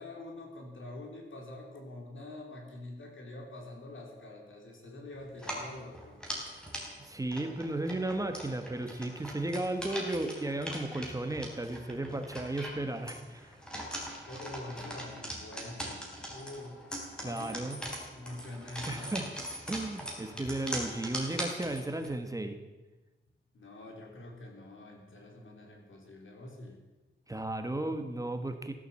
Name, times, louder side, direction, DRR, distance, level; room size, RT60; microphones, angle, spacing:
voice 1, 0.0-6.2 14.3-16.8 17.2-19.5 23.5-26.8, left 2 dB, 75° left, 1 dB, 3.9 m, -46 dB
sound 1, 5.3-22.1, equal, 5° left, 3.7 m, -41 dB
voice 2, 7.0-13.5 17.2-17.8 18.9-19.3 19.7-22.6 27.3-28.7, right 2 dB, 15° right, 7 dB, 1.3 m, -34 dB
16.5 x 11.5 x 7.4 m, 1.1 s
wide cardioid pair, 160°, 20 cm